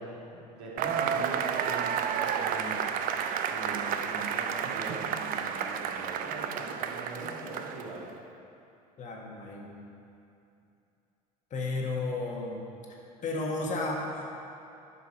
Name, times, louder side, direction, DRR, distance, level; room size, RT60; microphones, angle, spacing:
voice 1, 0.0-8.1, right 2 dB, 65° right, -4 dB, 2.1 m, -42 dB
Cheering / Applause / Crowd, 0.8-8.0, right 8 dB, 45° right, 0.5 m, -31 dB
voice 2, 9.0-9.8 11.5-12.6 13.2-14.3, left 2 dB, 35° left, -2 dB, 1.6 m, -33 dB
10.0 x 5.7 x 4.3 m, 2.7 s
hypercardioid pair, 75°, 21 cm